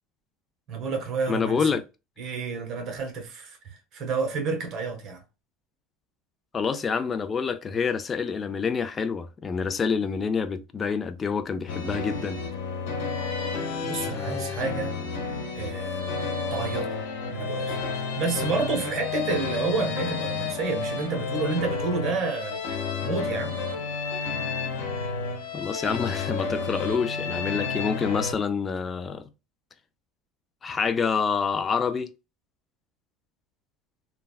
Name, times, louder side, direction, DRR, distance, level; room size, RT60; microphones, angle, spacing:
voice 1, 0.7-1.8 2.2-5.2 13.8-15.0 15.5-16.0 16.5-17.0 17.3-17.8 18.2-22.6 23.0-23.6, right 4 dB, 45° right, 1.1 m, -29 dB
voice 2, 1.3-1.8 6.5-12.4 14.1-14.6 25.5-29.3 30.6-32.1, left 5 dB, 25° left, 0.4 m, -27 dB
sound 1, 11.7-28.3, left 5 dB, 85° left, 1.2 m, -31 dB
3.2 x 2.3 x 2.3 m
supercardioid pair, 120°, 0 cm